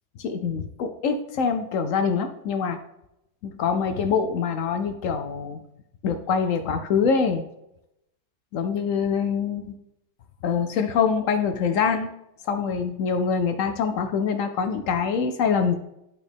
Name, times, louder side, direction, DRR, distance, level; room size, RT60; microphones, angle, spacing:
voice 1, 0.2-2.8 3.4-5.6 6.0-7.4 8.5-9.6 10.4-12.1 12.4-15.8, left 6 dB, 65° left, 8 dB, 0.9 m, -24 dB
10.5 x 4.2 x 3.5 m, 0.85 s
omnidirectional pair, 1.6 m